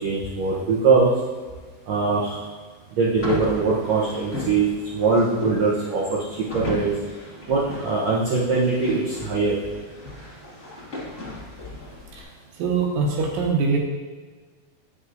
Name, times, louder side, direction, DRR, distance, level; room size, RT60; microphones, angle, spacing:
voice 1, 0.0-1.1 1.9-2.4 3.0-4.7 4.9-6.9 7.5-9.5, right 4 dB, 90° right, -6 dB, 1.5 m, -22 dB
sound 1, 3.2-12.2, left 2 dB, 45° left, 0.9 m, -36 dB
voice 2, 12.6-13.8, right 4 dB, 70° right, -1 dB, 2.5 m, -23 dB
9.7 x 6.1 x 2.6 m, 1.4 s
omnidirectional pair, 4.4 m